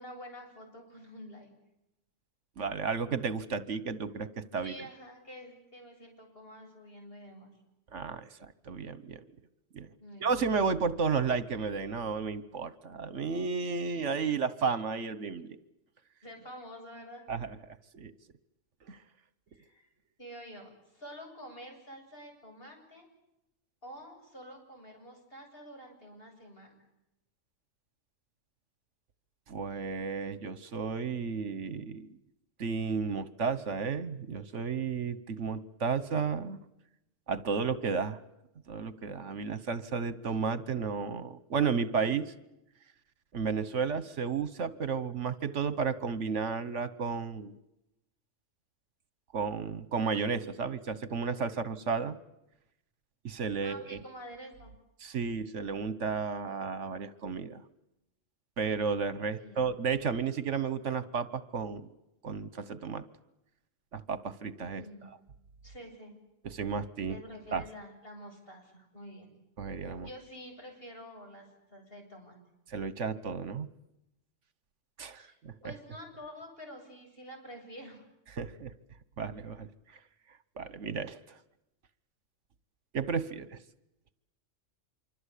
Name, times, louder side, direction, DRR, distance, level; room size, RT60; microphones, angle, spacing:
voice 1, 0.0-1.5 4.5-7.5 10.0-10.3 16.2-17.2 19.5-19.9 20.2-23.1 23.8-26.8 53.6-54.7 59.3-59.7 64.8-65.1 65.6-66.1 67.0-69.3 69.7-72.4 75.2-78.0, equal, 50° left, 2 dB, 8.4 m, -48 dB
voice 2, 2.6-4.7 7.9-9.2 9.7-9.9 10.2-15.6 17.3-18.1 18.9-19.0 29.5-32.2 32.6-36.6 37.3-38.2 38.7-42.3 43.3-47.6 49.3-52.2 53.2-54.0 55.0-57.6 58.6-61.9 62.2-63.0 63.9-65.1 66.4-67.2 67.5-67.6 69.6-70.1 72.7-73.7 75.0-75.7 78.4-78.7 79.2-79.7 80.6-81.4 82.9-83.6, right 5 dB, 70° right, 15 dB, 1.5 m, -33 dB
26.5 x 24.5 x 8.4 m, 0.87 s
omnidirectional pair, 1.3 m